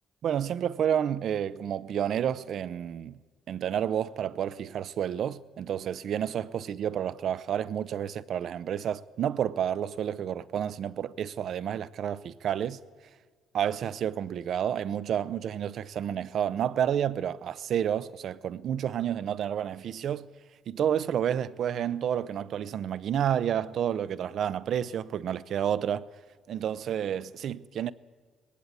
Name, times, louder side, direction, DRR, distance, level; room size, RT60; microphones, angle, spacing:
voice 1, 0.2-3.2 3.5-12.8 13.5-20.3 20.7-26.1 26.5-27.9, right 9 dB, 65° right, 0.7 m, -30 dB
18.5 x 17.0 x 9.5 m
cardioid pair, 90°, 0 cm